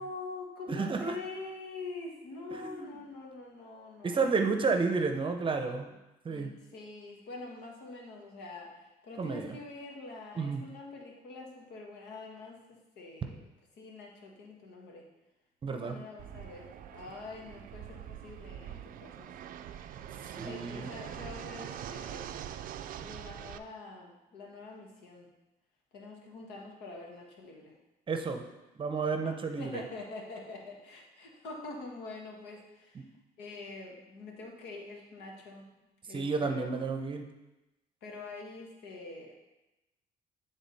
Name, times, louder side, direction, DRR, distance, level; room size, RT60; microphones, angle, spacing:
voice 1, 0.0-4.5 6.2-13.5 13.8-15.1 15.7-19.3 20.4-22.4 23.0-25.3 25.9-27.8 29.6-33.0 33.4-35.7 36.0-36.8 38.0-39.3, left 3 dB, 80° left, -1 dB, 1.6 m, -45 dB
voice 2, 0.7-1.2 2.5-2.9 4.0-5.9 6.2-6.5 9.2-9.5 10.4-10.6 15.6-16.0 20.4-20.9 28.1-28.4 28.8-29.8 32.9-33.0 36.1-37.3, right 4 dB, 30° right, 5 dB, 0.7 m, -31 dB
Fixed-wing aircraft airplane, 16.2-23.6, right 10 dB, 55° right, 0.4 m, -43 dB
9.3 x 3.7 x 4.1 m, 1.0 s
cardioid pair, 110°, 17 cm